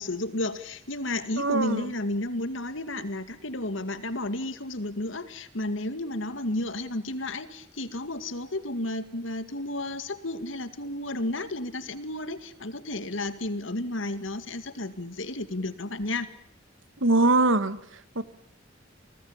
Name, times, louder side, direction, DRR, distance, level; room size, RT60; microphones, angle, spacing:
voice 1, 0.0-16.3, left 1 dB, 75° left, 11 dB, 2.1 m, -32 dB
voice 2, 1.4-1.9 17.0-18.2, right 2 dB, 75° right, 13 dB, 1.7 m, -23 dB
28.5 x 19.5 x 8.8 m, 0.68 s
head